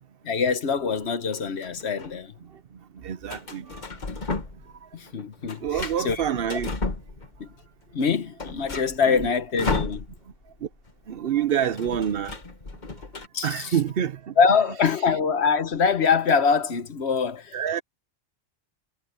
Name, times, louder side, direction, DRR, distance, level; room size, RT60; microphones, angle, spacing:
voice 1, 0.2-2.3 4.9-6.2 7.4-7.5 7.9-10.1 13.3-13.7 14.4-17.8, left 5 dB, 55° left, 1.3 m, -24 dB
sound 1, 1.3-2.1 3.3-4.8 5.1-7.5 7.9-8.0 8.2-10.5 10.7-10.9 11.2-13.3, left 3 dB, 35° left, 1.6 m, -33 dB
voice 2, 2.4-3.8 4.8-4.9 5.6-6.8 9.0-9.3 10.6-10.7 11.1-12.4 12.9-13.0 13.4-14.6 17.5-17.8, right 9 dB, 55° right, 0.8 m, -28 dB
omnidirectional pair, 1.3 m